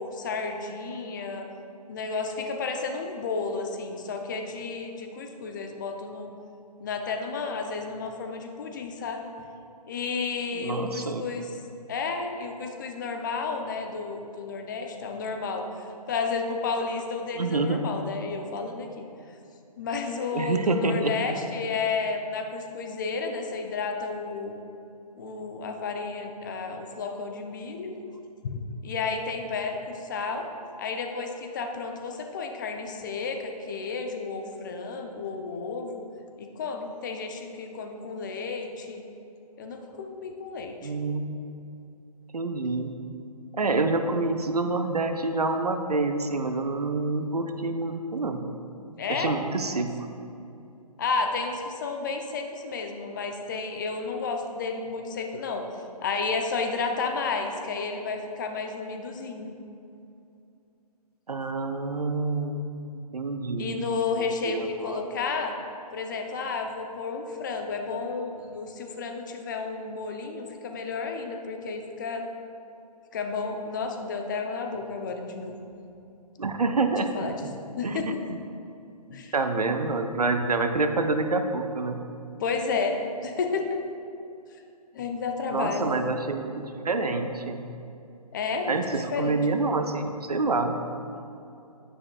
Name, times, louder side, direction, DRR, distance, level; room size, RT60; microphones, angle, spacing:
voice 1, 0.0-1.5 1.9-6.3 6.8-9.2 9.9-11.5 11.9-15.7 16.1-19.1 19.8-24.6 25.2-28.0 28.4-30.5 30.8-36.0 36.4-39.0 39.6-40.9 49.0-49.8 51.0-55.6 56.0-59.5 63.6-65.5 65.9-72.2 73.1-75.6 77.1-77.4 77.8-78.3 79.1-79.3 82.4-83.8 84.9-85.9 88.3-88.8 89.1-89.4 91.1-91.2, left 4 dB, 30° left, 4 dB, 0.6 m, -32 dB
voice 2, 10.5-11.3 17.4-17.8 20.3-21.1 40.8-41.4 42.3-42.9 43.5-48.4 49.1-49.9 61.3-62.6 63.1-63.9 64.2-65.1 76.4-77.1 77.4-77.5 77.8-78.0 79.3-82.0 85.5-87.6 88.7-90.7, right 3 dB, 70° right, 6 dB, 0.8 m, -27 dB
9.9 x 9.7 x 2.3 m, 2.7 s
figure-of-eight pair, 135°, 20 cm